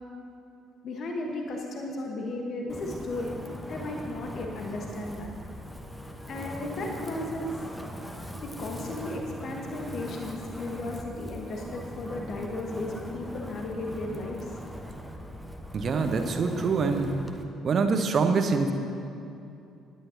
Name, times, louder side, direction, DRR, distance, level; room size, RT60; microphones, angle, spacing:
voice 1, 0.8-3.3 3.7-5.3 6.3-7.5 8.4-14.5, left 2 dB, 50° left, 1 dB, 1.4 m, -35 dB
Wind, 2.7-17.4, equal, 5° left, 1.1 m, -40 dB
voice 2, 15.7-17.2 17.6-18.7, right 4 dB, 40° right, 6 dB, 1.0 m, -25 dB
18.5 x 11.0 x 2.9 m, 2.6 s
figure-of-eight pair, 45°, 0 cm